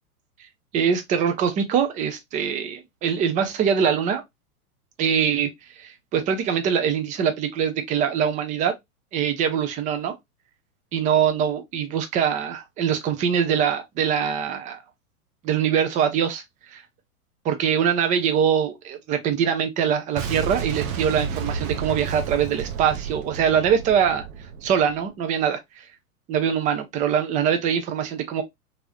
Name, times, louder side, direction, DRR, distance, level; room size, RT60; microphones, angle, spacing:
voice 1, 0.7-4.2 5.0-5.5 5.8-8.7 9.1-10.1 10.9-14.8 15.4-16.4 16.7-16.8 17.4-24.2 24.6-25.9 26.3-28.4, right 8 dB, 15° right, 0.4 m, -23 dB
Boom, 20.2-25.1, right 6 dB, 60° right, 0.9 m, -31 dB
3.0 x 2.6 x 2.8 m
hypercardioid pair, 110°, 45 cm